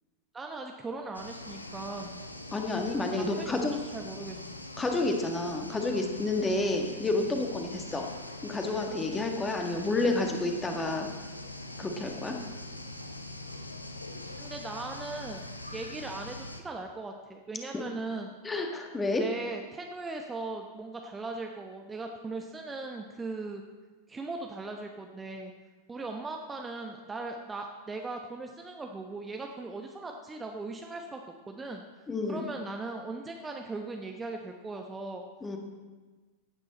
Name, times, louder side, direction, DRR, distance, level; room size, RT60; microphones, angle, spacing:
voice 1, 0.3-2.2 3.2-3.6 3.9-4.4 14.4-15.5 15.7-18.3 19.2-23.6 24.1-25.5 25.9-31.9 32.2-35.3, right 3 dB, 15° right, 3 dB, 0.9 m, -39 dB
sound 1, 1.1-16.6, left 1 dB, 85° left, 0.9 m, -43 dB
voice 2, 2.5-3.7 4.8-8.1 8.4-11.1 11.8-12.4 17.7-17.8 18.4-19.3 32.1-32.5 35.4-35.6, left 2 dB, 15° left, 3 dB, 1.7 m, -30 dB
15.0 x 9.0 x 4.2 m, 1.3 s
figure-of-eight pair, 90°, 0 cm